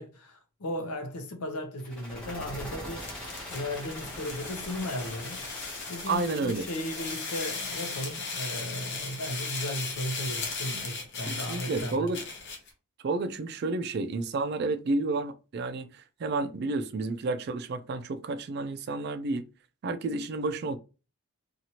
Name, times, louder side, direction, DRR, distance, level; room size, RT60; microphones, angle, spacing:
voice 1, 0.0-3.1 3.5-5.4 5.9-12.1, left 1 dB, 90° left, 0.7 m, -36 dB
sound 1, 1.8-8.6, equal, 5° left, 0.9 m, -43 dB
sound 2, 2.8-12.7, left 4 dB, 50° left, 0.8 m, -37 dB
voice 2, 6.1-6.7 11.3-12.2 13.0-19.5 19.8-20.8, right 3 dB, 45° right, 0.3 m, -31 dB
2.8 x 2.4 x 2.8 m
head